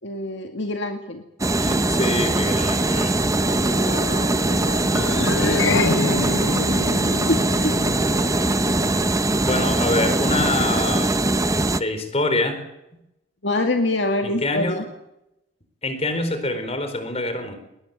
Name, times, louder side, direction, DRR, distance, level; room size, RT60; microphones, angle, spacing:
voice 1, 0.0-1.2 3.2-6.2 7.3-7.7 13.4-14.8, left 2 dB, 65° left, 4 dB, 2.2 m, -27 dB
sound 1, 1.4-11.8, right 2 dB, 15° right, 0.8 m, -21 dB
voice 2, 1.6-3.2 5.4-5.6 9.4-11.2 11.7-12.6 14.2-14.9 15.8-17.6, left 2 dB, 35° left, 9 dB, 4.5 m, -25 dB
sound 2, 4.9-9.5, left 4 dB, 90° left, 0.8 m, -27 dB
20.5 x 20.5 x 8.1 m, 0.86 s
head